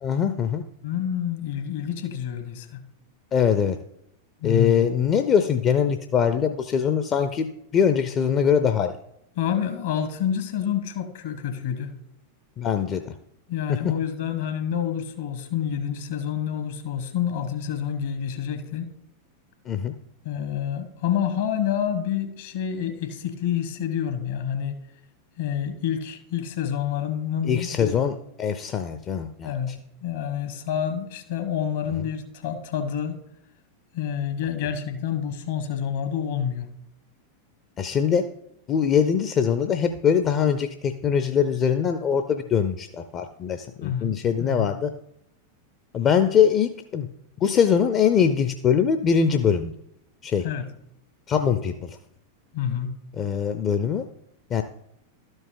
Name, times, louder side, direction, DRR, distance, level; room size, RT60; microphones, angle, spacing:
voice 1, 0.0-0.6 3.3-3.8 4.4-8.9 12.6-13.1 13.7-13.8 19.7-19.9 27.4-29.5 37.8-38.2 38.7-44.9 45.9-47.1 47.4-49.7 50.2-50.5 51.3-52.0 53.2-54.0 54.5-54.6, left 7 dB, 30° left, 8 dB, 0.5 m, -22 dB
voice 2, 0.8-2.8 4.4-4.9 9.4-11.9 13.5-18.9 20.2-24.8 25.4-28.0 29.4-29.8 30.0-33.2 33.9-36.7 43.8-44.7 50.4-50.7 52.5-52.9, left 9 dB, 55° left, 10 dB, 1.2 m, -28 dB
12.0 x 5.3 x 3.8 m, 0.78 s
figure-of-eight pair, 90°, 0 cm